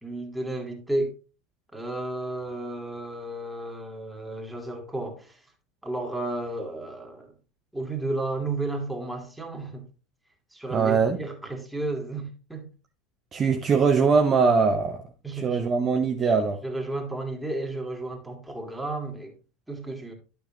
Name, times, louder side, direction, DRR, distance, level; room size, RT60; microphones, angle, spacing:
voice 1, 0.0-1.1 1.7-5.4 5.8-7.3 7.7-9.8 10.5-12.7 13.4-13.5 15.2-15.7 16.2-16.3 16.6-19.3 19.7-20.1, right 2 dB, 5° right, 2.4 m, -33 dB
voice 2, 10.7-11.2 13.3-15.0 15.4-16.6, right 5 dB, 30° right, 0.9 m, -22 dB
11.5 x 6.9 x 2.9 m
figure-of-eight pair, 75°, 0 cm